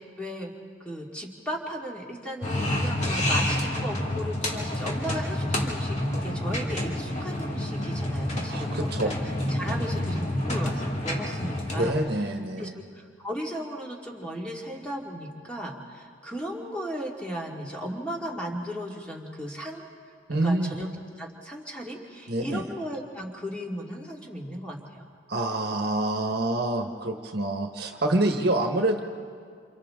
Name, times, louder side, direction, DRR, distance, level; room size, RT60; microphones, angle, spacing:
voice 1, 0.2-0.5 0.8-9.1 9.5-12.0 12.5-19.9 20.3-20.9 21.2-25.1, equal, 5° left, -2 dB, 2.3 m, -36 dB
sound 1, 2.4-11.9, left 1 dB, 35° left, 2.5 m, -28 dB
voice 2, 8.5-9.1 11.7-12.7 20.3-20.7 22.3-22.6 25.3-29.0, right 1 dB, 55° right, 3 dB, 1.4 m, -26 dB
29.0 x 28.0 x 3.8 m, 2.2 s
head